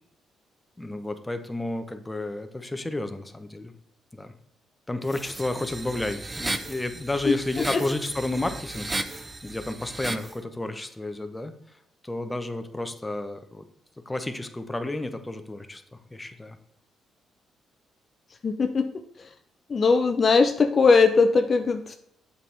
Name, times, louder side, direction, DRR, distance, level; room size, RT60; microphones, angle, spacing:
voice 1, 0.8-3.7 4.1-4.3 4.9-11.5 12.0-13.6 14.1-16.6, left 2 dB, 10° left, 7 dB, 0.8 m, -31 dB
sound 1, 5.0-10.3, right 2 dB, 20° right, 0.6 m, -35 dB
voice 2, 18.4-18.8 19.7-21.9, left 4 dB, 40° left, 6 dB, 0.5 m, -20 dB
7.5 x 5.4 x 3.4 m, 0.76 s
cardioid pair, 90°, 0 cm